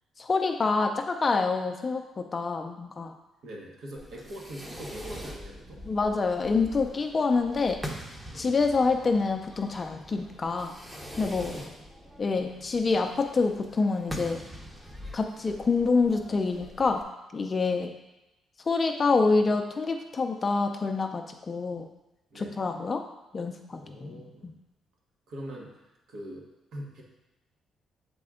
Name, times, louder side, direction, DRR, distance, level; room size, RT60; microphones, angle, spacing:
voice 1, 0.2-3.1 5.9-7.8 8.3-10.8 11.2-11.6 12.2-14.4 15.1-17.0 17.3-17.9 18.7-21.9 22.4-23.0 23.3-24.1 24.4-24.5, left 4 dB, 35° left, 4 dB, 0.5 m, -26 dB
voice 2, 3.4-5.8 8.3-8.4 11.4-11.9 17.7-17.9 22.3-22.6 23.7-24.5 25.3-27.0, right 1 dB, 75° right, -2 dB, 1.4 m, -43 dB
Fireworks, 4.0-17.0, equal, 10° right, 0.9 m, -43 dB
6.8 x 4.2 x 3.7 m, 0.98 s
cardioid pair, 90°, 0 cm